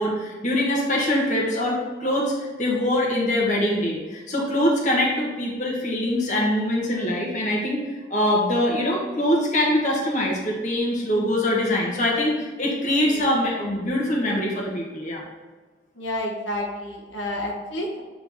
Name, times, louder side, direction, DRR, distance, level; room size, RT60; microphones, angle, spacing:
voice 1, 0.0-7.8 8.1-15.2, left 1 dB, 40° left, -3 dB, 1.4 m, -23 dB
voice 2, 13.0-13.3 15.9-18.0, left 1 dB, 85° left, -1 dB, 1.3 m, -30 dB
7.9 x 4.0 x 3.5 m, 1.3 s
head